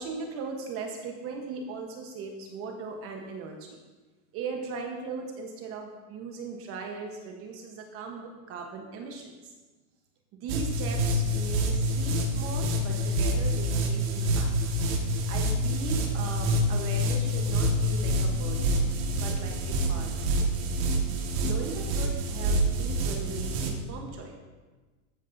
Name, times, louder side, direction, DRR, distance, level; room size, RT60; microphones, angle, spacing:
voice 1, 0.0-3.8 4.3-9.5 10.4-14.5 14.8-18.8 19.1-20.3 21.4-24.3, right 4 dB, 30° right, 2 dB, 1.1 m, -38 dB
sound 1, 10.5-23.7, equal, 50° right, 1.7 m, -27 dB
13.5 x 9.5 x 2.6 m, 1.3 s
supercardioid pair, 155°, 43 cm